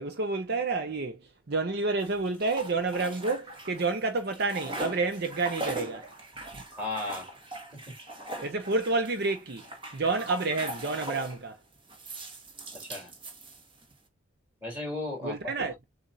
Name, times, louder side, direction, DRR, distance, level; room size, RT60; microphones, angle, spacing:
voice 1, 0.0-6.1 6.5-6.6 8.4-9.6 9.9-11.6 15.2-15.7, right 3 dB, 50° right, 0.7 m, -29 dB
sound 1, 2.0-3.9 4.2-11.4 11.9-13.9, right 1 dB, 25° right, 1.4 m, -40 dB
voice 2, 6.7-7.3 7.7-8.0 12.7-13.1 14.6-15.7, left 2 dB, 10° right, 3.2 m, -36 dB
6.9 x 2.6 x 2.6 m
head